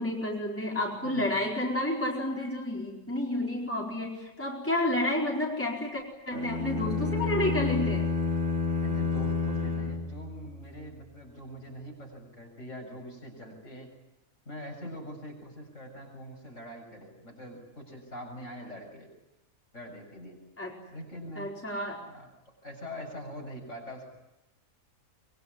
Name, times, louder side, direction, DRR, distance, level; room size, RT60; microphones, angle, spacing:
voice 1, 0.0-8.1 20.6-20.8 21.4-22.0, left 1 dB, 10° left, -2 dB, 4.7 m, -30 dB
sound 1, 6.3-10.7, left 4 dB, 50° right, 4.2 m, -29 dB
voice 2, 8.8-13.9 14.5-19.1 19.7-20.5 20.9-21.5 22.0-22.3 22.6-24.1, equal, 50° left, 1 dB, 7.6 m, -43 dB
25.0 x 23.5 x 9.6 m, 0.98 s
omnidirectional pair, 1.6 m